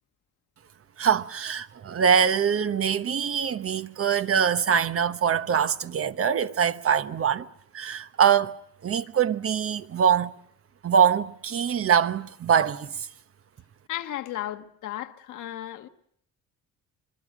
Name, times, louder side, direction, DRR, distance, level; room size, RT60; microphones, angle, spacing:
voice 1, 1.0-7.5 7.7-10.3 10.8-13.1, right 7 dB, 50° right, 1.1 m, -23 dB
voice 2, 13.9-15.9, left 13 dB, 85° left, 1.4 m, -34 dB
26.0 x 22.0 x 6.2 m
cardioid pair, 90°, 30 cm